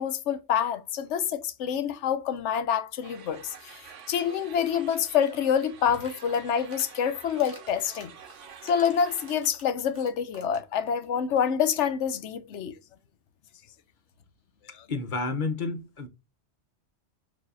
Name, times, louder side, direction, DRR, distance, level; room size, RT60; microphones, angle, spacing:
voice 1, 0.0-8.1 8.6-12.8 14.8-14.9, left 8 dB, 75° left, 0.9 m, -27 dB
sound 1, 3.0-9.4, right 7 dB, 80° right, 1.1 m, -48 dB
sound 2, 5.9-6.9 7.3-10.7 11.0-11.1 11.4-11.5 11.6-11.9, equal, 10° right, 1.5 m, -51 dB
voice 2, 14.9-16.1, left 3 dB, 50° left, 0.8 m, -30 dB
6.8 x 2.7 x 2.5 m
omnidirectional pair, 1.2 m